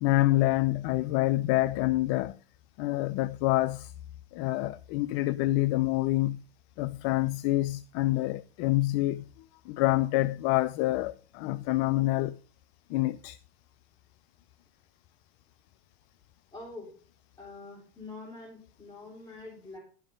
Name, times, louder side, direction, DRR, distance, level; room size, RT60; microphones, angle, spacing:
voice 1, 0.0-2.4 2.8-3.9 4.3-6.4 6.8-9.2 9.7-12.4 12.9-13.4, left 17 dB, 45° left, 0.5 m, -27 dB
voice 2, 16.5-16.9 17.4-19.8, left 3 dB, 15° left, 3.9 m, -45 dB
12.0 x 5.8 x 5.3 m
hypercardioid pair, 105°, 31 cm